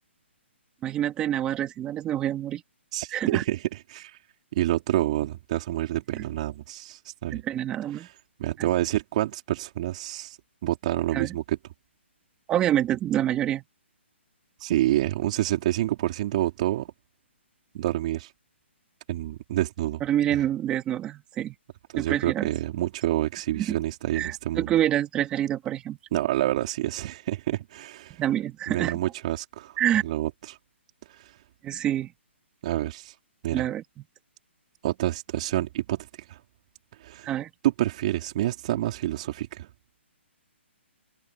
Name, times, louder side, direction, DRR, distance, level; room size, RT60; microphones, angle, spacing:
voice 1, 0.8-2.6 3.1-3.4 6.1-6.2 7.3-8.1 8.6-8.7 11.1-11.4 12.5-13.6 20.0-21.5 22.0-22.5 23.6-23.8 24.1-26.0 28.2-29.0 29.8-30.0 31.6-32.1 33.5-34.0 37.2-37.5, right 11 dB, 15° right, 2.5 m, -27 dB
voice 2, 2.9-4.2 4.5-7.4 7.9-8.1 8.4-10.4 10.6-11.6 14.6-16.9 17.7-18.3 19.1-20.0 20.3-20.4 21.9-24.7 26.1-28.2 28.7-30.6 31.1-31.4 32.6-33.2 33.4-33.7 34.8-36.4 37.0-37.3 37.6-39.7, right 14 dB, 35° right, 3.8 m, -28 dB
hypercardioid pair, 165°, 7 cm